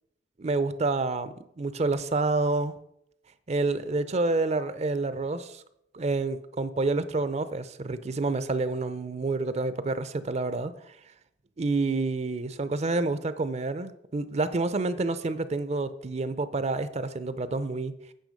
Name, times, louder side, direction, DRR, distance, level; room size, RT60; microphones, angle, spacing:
voice 1, 0.4-2.8 3.5-5.6 5.9-10.7 11.6-17.9, right 3 dB, 40° right, 13 dB, 0.5 m, -28 dB
9.1 x 6.0 x 5.1 m, 0.76 s
head